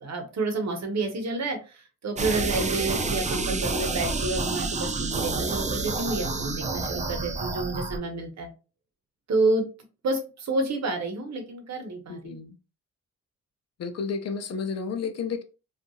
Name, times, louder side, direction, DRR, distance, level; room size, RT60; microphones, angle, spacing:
voice 1, 0.0-8.5 9.3-9.6 10.0-12.5, right 2 dB, 65° right, 5 dB, 0.9 m, -29 dB
sound 1, 2.2-8.0, right 3 dB, 25° right, 0.4 m, -29 dB
voice 2, 12.1-12.6 13.8-15.4, left 5 dB, 60° left, 7 dB, 0.6 m, -31 dB
2.7 x 2.4 x 2.6 m, 0.32 s
cardioid pair, 95°, 29 cm